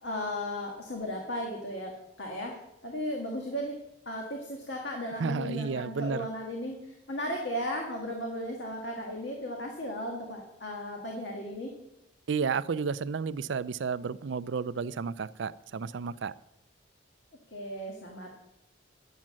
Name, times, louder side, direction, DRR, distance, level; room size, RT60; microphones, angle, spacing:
voice 1, 0.0-11.8 17.5-18.3, equal, 65° left, 0 dB, 1.7 m, -36 dB
voice 2, 5.2-6.3 12.3-16.3, right 5 dB, 70° right, 17 dB, 0.4 m, -32 dB
10.5 x 7.4 x 7.5 m, 0.87 s
head